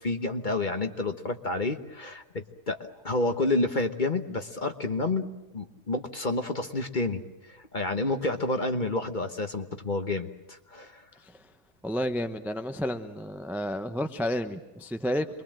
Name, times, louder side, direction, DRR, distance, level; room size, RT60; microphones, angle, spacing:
voice 1, 0.0-2.8 3.0-5.3 5.5-7.2 7.5-11.0, left 2 dB, 35° left, 7 dB, 1.2 m, -29 dB
voice 2, 11.8-15.4, equal, ahead, 8 dB, 0.7 m, -31 dB
26.5 x 22.5 x 7.5 m, 1.0 s
omnidirectional pair, 1.7 m